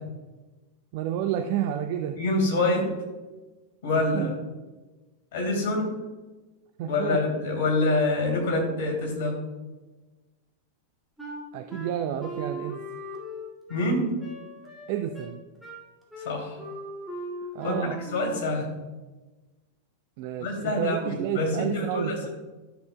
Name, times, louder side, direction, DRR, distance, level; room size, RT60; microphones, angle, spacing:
voice 1, 0.9-2.2 4.1-4.3 6.8-7.2 11.5-12.8 14.9-15.4 17.5-18.0 20.2-22.3, right 10 dB, 45° right, 6 dB, 0.5 m, -30 dB
voice 2, 2.2-2.9 3.8-4.3 5.3-6.0 6.8-9.4 13.7-14.1 16.2-16.6 17.6-17.8 18.1-18.7 20.4-22.3, left 2 dB, 55° left, 0 dB, 2.5 m, -26 dB
Wind instrument woodwind instrument, 11.2-18.6, equal, 5° right, 2.1 m, -39 dB
12.0 x 6.8 x 2.2 m, 1.2 s
figure-of-eight pair, 90°, 0 cm